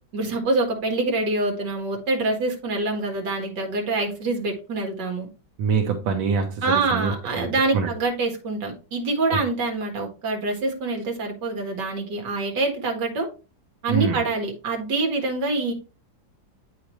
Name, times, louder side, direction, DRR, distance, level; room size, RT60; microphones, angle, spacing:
voice 1, 0.1-5.3 6.6-13.3 13.8-15.7, right 3 dB, 65° right, 2 dB, 2.2 m, -25 dB
voice 2, 5.6-6.6 6.9-7.9 9.3-9.4 13.9-14.2, right 6 dB, 85° right, 3 dB, 1.7 m, -25 dB
8.6 x 5.1 x 3.1 m, 0.32 s
omnidirectional pair, 2.1 m